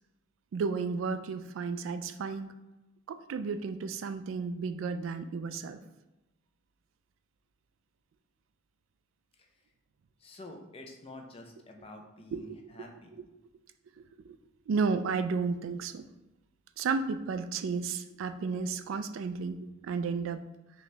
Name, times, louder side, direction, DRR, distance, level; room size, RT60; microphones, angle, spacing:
voice 1, 0.5-2.5 3.1-5.8 12.3-12.9 14.0-14.4 14.7-16.1 16.8-20.4, right 5 dB, 85° right, 9 dB, 0.3 m, -33 dB
voice 2, 10.2-13.2, left 2 dB, 30° left, 2 dB, 0.6 m, -48 dB
4.0 x 3.0 x 3.3 m, 1.0 s
head